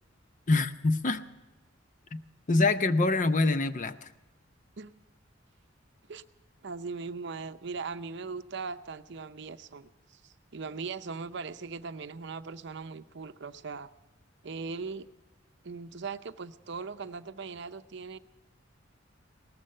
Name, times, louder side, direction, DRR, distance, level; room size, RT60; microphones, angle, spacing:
voice 1, 0.5-1.2 2.1-2.2 2.5-4.1, left 3 dB, 40° left, 11 dB, 0.6 m, -25 dB
voice 2, 6.6-13.9 14.4-15.1 15.6-18.2, right 4 dB, 65° right, 11 dB, 0.6 m, -39 dB
18.5 x 14.0 x 5.5 m, 1.1 s
head